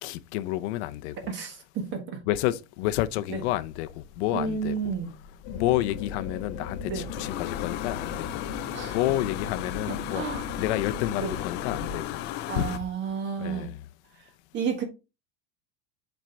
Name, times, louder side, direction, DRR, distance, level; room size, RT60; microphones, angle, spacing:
voice 1, 0.0-1.2 2.3-4.9 5.5-13.8, left 15 dB, 80° left, 0.7 m, -30 dB
voice 2, 1.3-2.2 3.3-3.4 4.3-5.1 6.9-7.1 8.7-9.0 9.9-10.5 11.1-11.3 12.5-13.7 14.5-14.8, right 6 dB, 35° right, 1.7 m, -31 dB
sound 1, 3.3-12.8, left 13 dB, 35° left, 0.4 m, -37 dB
sound 2, 5.4-12.0, left 5 dB, 50° left, 1.4 m, -38 dB
7.7 x 4.5 x 3.3 m
cardioid pair, 175°, 34 cm